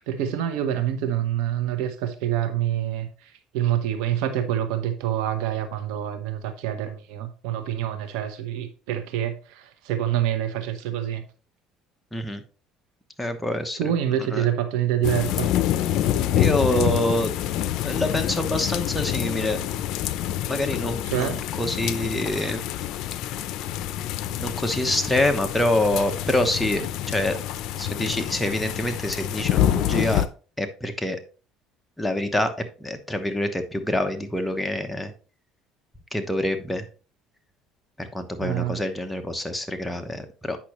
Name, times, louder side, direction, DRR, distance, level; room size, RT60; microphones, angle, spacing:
voice 1, 0.1-11.2 13.8-15.5 21.1-21.4 38.4-38.8, right 11 dB, 80° right, 8 dB, 0.9 m, -26 dB
voice 2, 12.1-12.4 13.2-13.8 14.3-14.5 16.3-17.3 17.8-19.6 20.5-22.6 24.4-27.4 27.8-30.3 30.6-31.2 32.0-32.5 32.8-35.1 36.1-36.8 38.0-40.6, left 1 dB, 5° left, 5 dB, 1.0 m, -26 dB
sound 1, 15.0-30.3, left 12 dB, 65° left, 0.5 m, -27 dB
8.4 x 5.8 x 3.1 m, 0.37 s
cardioid pair, 115°, 0 cm